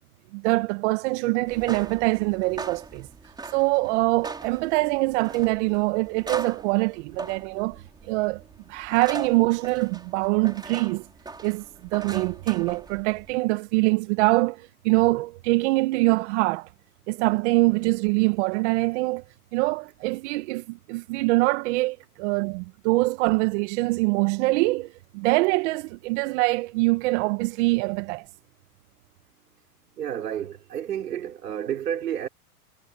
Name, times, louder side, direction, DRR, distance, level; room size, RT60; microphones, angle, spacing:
voice 1, 0.3-3.1 3.5-8.4 8.7-11.0 11.4-11.6 11.9-16.7 17.1-19.2 19.5-28.3, right 24 dB, 45° right, 1.7 m, -24 dB
sound 1, 1.4-13.3, right 3 dB, 10° right, 4.1 m, -40 dB
voice 2, 30.0-32.3, right 9 dB, 85° right, 3.7 m, -30 dB
hypercardioid pair, 135°, 47 cm